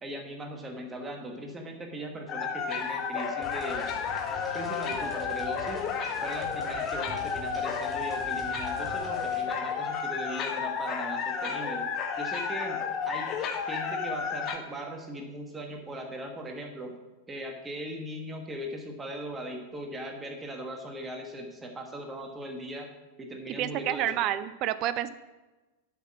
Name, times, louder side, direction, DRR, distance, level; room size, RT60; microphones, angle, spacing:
voice 1, 0.0-3.9 4.5-5.9 6.2-11.8 12.2-13.3 13.7-17.0 17.3-22.9 23.2-24.2, right 1 dB, 15° right, 2 dB, 1.3 m, -39 dB
sound 1, 2.3-14.6, left 6 dB, 35° left, 0.9 m, -32 dB
sound 2, 3.4-9.4, left 1 dB, ahead, 1.7 m, -45 dB
voice 2, 23.6-25.1, right 12 dB, 40° right, 14 dB, 0.4 m, -29 dB
8.0 x 6.0 x 6.0 m, 1.2 s
figure-of-eight pair, 90°, 0 cm